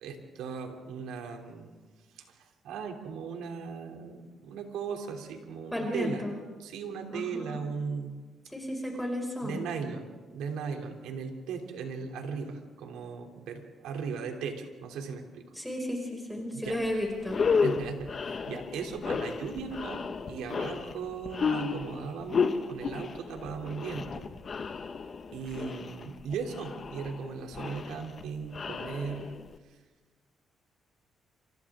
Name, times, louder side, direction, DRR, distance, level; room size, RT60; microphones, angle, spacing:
voice 1, 0.0-1.7 2.1-6.2 6.6-8.2 9.4-15.4 16.5-16.8 17.6-24.3 25.3-29.3, right 5 dB, 90° right, 3 dB, 3.0 m, -37 dB
voice 2, 5.7-6.4 7.1-7.6 8.5-9.6 15.5-17.4, left 1 dB, 5° left, 0 dB, 5.8 m, -33 dB
sound 1, 16.7-16.9 17.2-29.6, left 5 dB, 45° left, 1.5 m, -33 dB
29.0 x 27.0 x 3.7 m, 1.4 s
cardioid pair, 90°, 0 cm